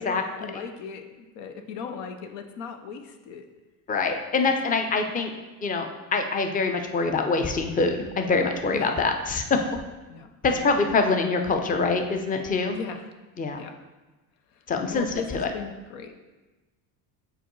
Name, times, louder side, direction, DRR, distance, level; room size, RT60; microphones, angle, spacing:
voice 1, 0.0-3.5 8.7-8.9 10.1-11.2 12.7-13.1 13.5-13.8 14.5-16.1, left 6 dB, 80° left, 6 dB, 0.7 m, -38 dB
voice 2, 3.9-5.3 5.6-9.6 10.4-12.8 13.4-13.6 14.7-15.1 15.3-15.5, left 4 dB, 20° left, 5 dB, 0.6 m, -24 dB
6.8 x 4.5 x 3.1 m, 1.2 s
supercardioid pair, 95°, 42 cm